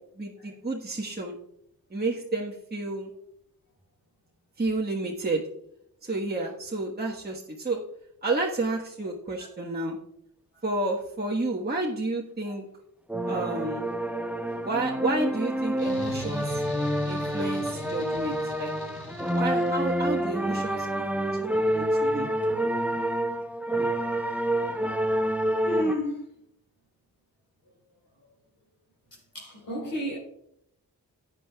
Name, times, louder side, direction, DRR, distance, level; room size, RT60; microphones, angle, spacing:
voice 1, 0.2-1.4 1.9-3.1 4.6-5.4 6.0-7.8 8.2-10.0 10.6-12.6 13.3-13.9 14.6-16.6 17.1-18.7 19.3-22.3, right 2 dB, 25° right, 1.4 m, -31 dB
sound 1, 13.1-25.9, right 1 dB, 5° right, 0.9 m, -28 dB
sound 2, 15.8-20.2, left 1 dB, 80° left, 1.6 m, -41 dB
voice 2, 25.6-26.3 29.3-30.2, left 1 dB, 65° left, 4.3 m, -32 dB
15.0 x 9.5 x 2.3 m
cardioid pair, 50°, 37 cm